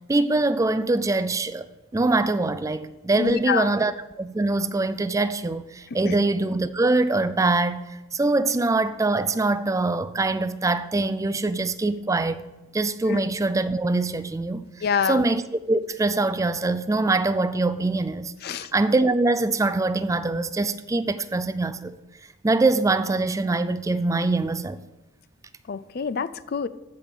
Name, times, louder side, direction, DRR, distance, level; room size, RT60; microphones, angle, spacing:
voice 1, 0.1-1.7 1.9-12.4 12.7-14.7 15.1-15.4 15.7-22.0 22.4-24.8, right 2 dB, 15° right, 0.3 m, -23 dB
voice 2, 3.2-3.8 6.0-6.2 13.1-13.2 14.8-15.2 18.4-18.7 25.7-26.7, left 6 dB, 50° left, 0.4 m, -26 dB
14.5 x 5.0 x 5.3 m
head